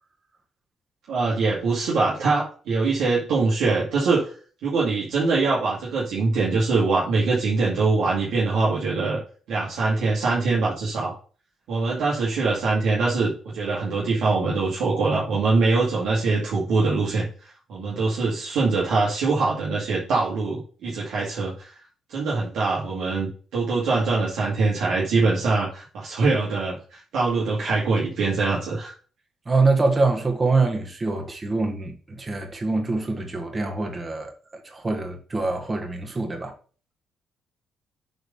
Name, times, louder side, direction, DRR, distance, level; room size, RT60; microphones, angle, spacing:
voice 1, 1.1-4.3 4.6-9.2 9.5-11.1 11.7-17.3 17.7-21.7 22.1-28.9, right 3 dB, 80° right, 2.3 m, -23 dB
voice 2, 29.5-34.3 34.7-36.5, right 3 dB, 30° right, 1.7 m, -24 dB
7.9 x 4.0 x 5.5 m
cardioid pair, 90°, 0 cm